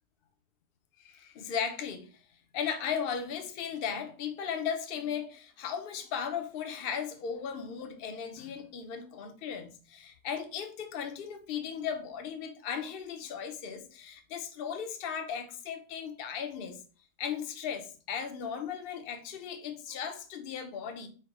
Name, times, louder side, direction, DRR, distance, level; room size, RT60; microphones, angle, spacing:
voice 1, 1.0-2.1 2.5-16.8 17.2-21.1, left 7 dB, 55° left, 0.7 m, -36 dB
4.5 x 2.1 x 4.7 m
omnidirectional pair, 1.4 m